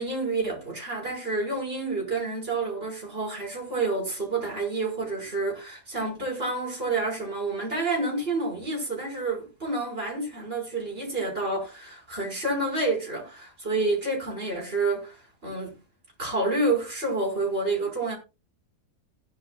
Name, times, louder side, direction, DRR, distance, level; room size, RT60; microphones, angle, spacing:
voice 1, 0.0-15.7 16.2-18.2, right 2 dB, 35° right, 6.0 m, -29 dB
17.0 x 10.5 x 2.5 m
omnidirectional pair, 1.7 m